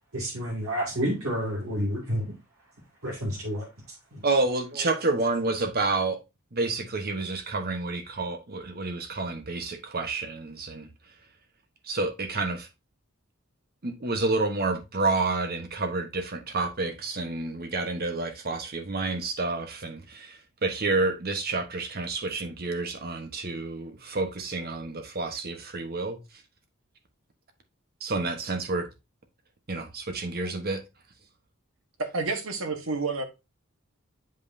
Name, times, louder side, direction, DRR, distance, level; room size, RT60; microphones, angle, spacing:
voice 1, 0.1-2.3 3.0-3.7 4.1-4.2, equal, 90° right, 2.4 m, -29 dB
voice 2, 4.2-6.2 6.5-10.9 11.9-12.7 13.8-26.2 28.0-28.9 29.7-30.8, right 3 dB, 50° right, 1.1 m, -29 dB
voice 3, 32.0-33.2, right 3 dB, 70° right, 1.3 m, -29 dB
7.9 x 5.3 x 2.7 m
head